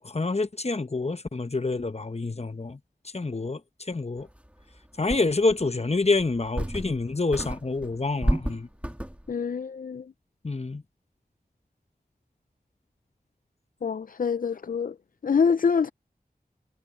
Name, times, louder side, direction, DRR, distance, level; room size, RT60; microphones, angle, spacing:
voice 1, 0.0-2.8 3.1-3.6 3.9-4.3 5.0-8.7 10.4-10.8, left 3 dB, 40° left, 0.8 m, -27 dB
sound 1, 4.5-4.6 5.1-5.7 6.2-7.0 7.3-9.3, equal, 10° right, 2.1 m, -30 dB
voice 2, 9.3-10.0 13.8-14.9 15.2-15.9, left 6 dB, 60° left, 0.4 m, -25 dB
wide cardioid pair, 50°, 16 cm